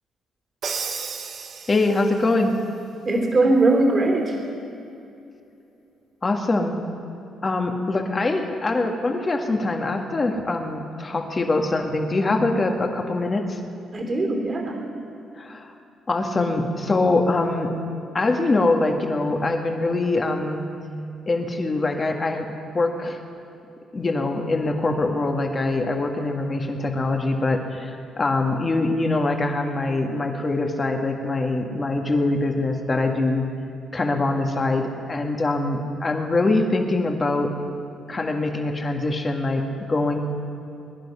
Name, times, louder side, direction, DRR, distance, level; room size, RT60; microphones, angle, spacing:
Crash cymbal, 0.6-2.3, right 5 dB, 60° right, 1.3 m, -32 dB
voice 1, 1.7-2.6 6.2-6.8 7.4-13.6 15.4-15.7 16.1-17.7 18.1-20.7 21.3-23.2 23.9-33.5 33.9-37.5 38.1-40.2, left 2 dB, 30° left, 3 dB, 1.8 m, -23 dB
voice 2, 3.0-4.4 13.9-14.8, right 2 dB, 35° right, 2 dB, 3.1 m, -20 dB
21.5 x 11.0 x 5.7 m, 2.7 s
cardioid pair, 90°, 0 cm